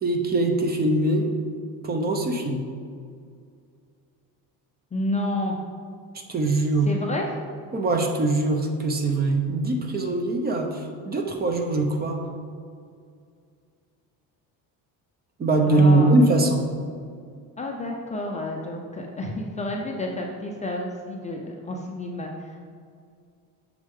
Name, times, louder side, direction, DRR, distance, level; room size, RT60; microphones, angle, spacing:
voice 1, 0.0-1.3 1.8-2.6 6.3-6.9 7.7-12.2 15.4-16.6, right 2 dB, 25° right, 3 dB, 0.6 m, -22 dB
voice 2, 4.9-5.6 6.9-7.3 15.7-16.2 17.6-22.6, left 1 dB, 20° left, 0 dB, 0.4 m, -30 dB
6.6 x 6.5 x 3.5 m, 2.3 s
cardioid pair, 150°, 38 cm